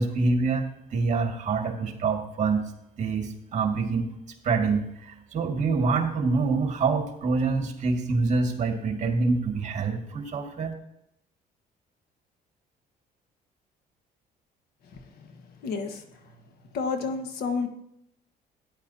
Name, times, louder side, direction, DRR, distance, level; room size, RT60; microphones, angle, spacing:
voice 1, 0.0-2.7 3.0-4.1 4.4-10.7, right 4 dB, 45° right, 3 dB, 2.2 m, -26 dB
voice 2, 14.8-16.4 16.7-17.7, left 4 dB, 70° left, 6 dB, 1.5 m, -32 dB
13.5 x 10.0 x 2.8 m, 0.78 s
cardioid pair, 110°, 17 cm